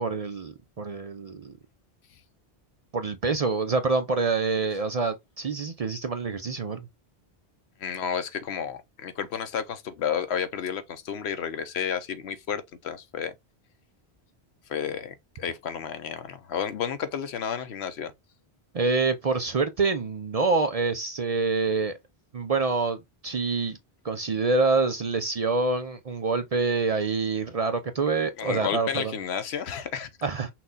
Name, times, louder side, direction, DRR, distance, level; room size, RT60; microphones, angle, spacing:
voice 1, 0.0-1.5 2.9-6.9 18.7-21.9 22.3-23.8 24.0-29.1 30.2-30.5, right 4 dB, 45° right, 0.5 m, -26 dB
voice 2, 7.8-13.3 14.7-18.1 28.4-30.1, left 7 dB, 85° left, 1.0 m, -31 dB
5.9 x 2.3 x 3.9 m
omnidirectional pair, 1.1 m